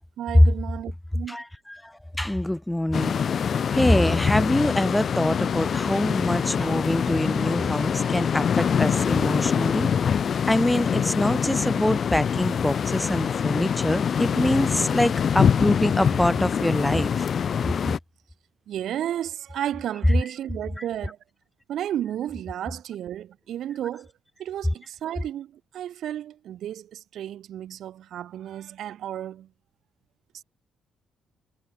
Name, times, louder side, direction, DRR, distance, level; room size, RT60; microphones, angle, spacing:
voice 1, 0.2-1.4 18.7-21.2 21.7-24.1 24.4-29.5, right 11 dB, 75° right, 1.1 m, -33 dB
voice 2, 1.3-1.9 2.2-3.2 3.7-9.9 10.5-17.1, left 1 dB, 5° left, 0.4 m, -25 dB
sound 1, 2.9-18.0, left 7 dB, 50° left, 0.6 m, -24 dB
cardioid pair, 90°, 0 cm